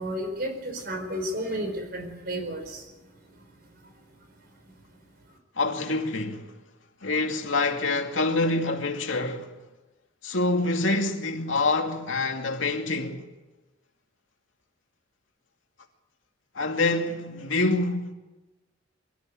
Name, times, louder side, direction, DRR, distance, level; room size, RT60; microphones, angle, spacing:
voice 1, 0.0-2.8, equal, 50° right, 4.6 m, -32 dB
voice 2, 5.6-6.5 7.0-9.5 10.2-13.2 16.5-18.1, left 2 dB, 80° left, 2.4 m, -26 dB
23.5 x 13.5 x 9.3 m
head